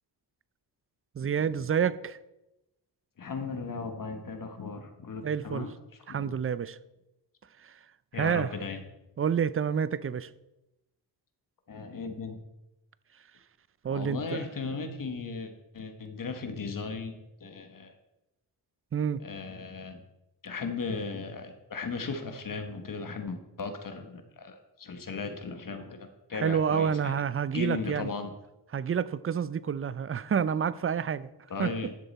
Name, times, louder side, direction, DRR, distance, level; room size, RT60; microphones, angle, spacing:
voice 1, 1.2-2.2 5.2-5.7 6.1-6.8 7.6-7.7 8.1-8.5 9.2-10.3 13.8-14.5 18.9-19.2 26.3-28.1 28.7-31.3 31.6-31.7, right 7 dB, 35° right, 0.5 m, -28 dB
voice 2, 3.2-5.7 6.1-6.3 8.1-8.8 11.7-12.4 13.9-17.1 17.4-17.9 19.2-20.0 20.4-27.1 27.5-28.3 31.5-31.9, left 4 dB, 50° left, 1.2 m, -36 dB
11.5 x 6.6 x 4.2 m
cardioid pair, 70°, 41 cm